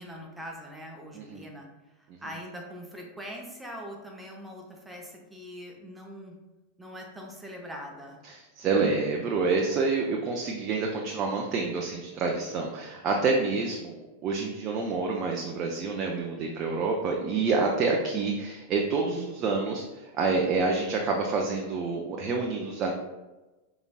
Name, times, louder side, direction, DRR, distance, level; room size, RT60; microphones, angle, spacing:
voice 1, 0.0-1.7 2.0-6.4 6.8-8.2 16.4-16.9, equal, 5° right, 0 dB, 0.9 m, -42 dB
voice 2, 1.1-1.4 8.2-22.9, right 4 dB, 35° right, 0 dB, 0.5 m, -28 dB
5.1 x 3.9 x 2.4 m, 1.1 s
figure-of-eight pair, 90°, 0 cm